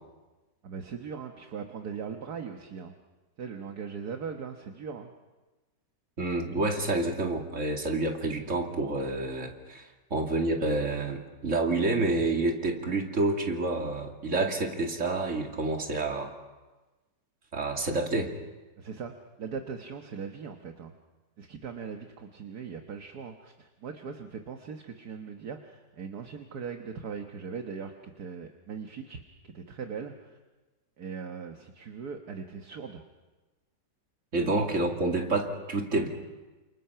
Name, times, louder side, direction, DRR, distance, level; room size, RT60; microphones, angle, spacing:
voice 1, 0.6-2.9 3.4-5.1 18.8-20.9 21.4-30.4 31.0-33.0 34.5-34.6, right 6 dB, 65° right, 4 dB, 1.8 m, -40 dB
voice 2, 6.2-9.8 10.1-16.3 17.5-18.3 34.3-36.1, right 2 dB, 45° right, 2 dB, 2.9 m, -28 dB
29.5 x 28.0 x 5.7 m, 1.2 s
omnidirectional pair, 1.9 m